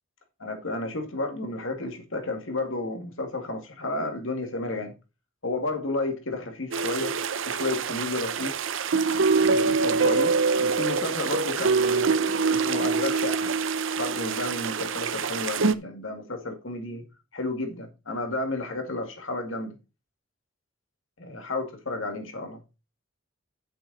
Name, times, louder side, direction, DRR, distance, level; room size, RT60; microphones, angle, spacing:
voice 1, 0.4-4.9 5.4-7.2 7.5-8.5 9.4-12.1 12.5-13.5 14.0-17.1 17.3-19.7 21.2-22.6, left 2 dB, 70° left, 2.2 m, -32 dB
sound 1, 6.7-15.7, right 4 dB, 70° right, 0.7 m, -25 dB
9.3 x 7.7 x 4.1 m
head